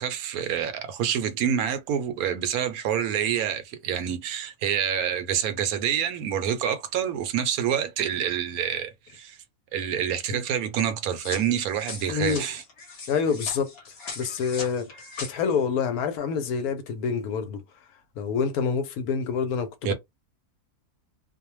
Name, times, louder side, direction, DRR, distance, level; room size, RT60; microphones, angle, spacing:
voice 1, 0.0-9.4 9.7-12.6 19.8-19.9, right 9 dB, 75° right, 1.0 m, -27 dB
sound 1, 11.2-15.3, left 4 dB, 50° left, 1.0 m, -39 dB
voice 2, 12.1-12.5 13.1-13.7 14.2-17.6 18.2-19.9, left 6 dB, 75° left, 1.1 m, -27 dB
2.6 x 2.1 x 2.9 m
omnidirectional pair, 1.6 m